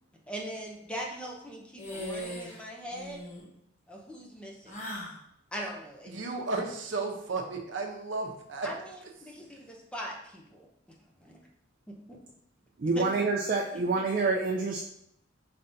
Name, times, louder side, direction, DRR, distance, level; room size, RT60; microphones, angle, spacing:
voice 1, 0.3-3.3 3.9-4.8 5.5-6.2 8.6-10.7 11.2-11.4 11.9-12.0 12.9-13.1 13.7-14.0, equal, 5° left, -1 dB, 0.6 m, -41 dB
sound 1, 1.8-2.6 2.9-3.4 4.7-5.2, equal, 40° left, 1.0 m, -39 dB
voice 2, 6.1-8.7, right 3 dB, 80° right, 2 dB, 0.7 m, -33 dB
voice 3, 12.8-14.8, right 3 dB, 50° right, 0 dB, 0.4 m, -27 dB
5.2 x 3.3 x 2.6 m, 0.75 s
head